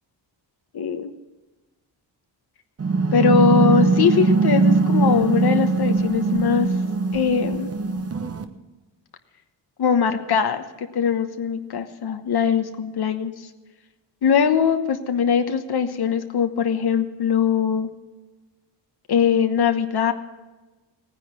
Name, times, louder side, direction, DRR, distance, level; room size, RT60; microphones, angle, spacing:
voice 1, 0.7-1.1 3.1-6.7 7.1-7.7 9.8-10.6 10.9-13.3 14.2-17.9 19.1-20.1, left 7 dB, 55° left, 7 dB, 1.2 m, -21 dB
sound 1, 2.8-8.4, right 3 dB, 30° right, 1.0 m, -20 dB
17.0 x 10.0 x 6.3 m, 1.2 s
cardioid pair, 125°, 45 cm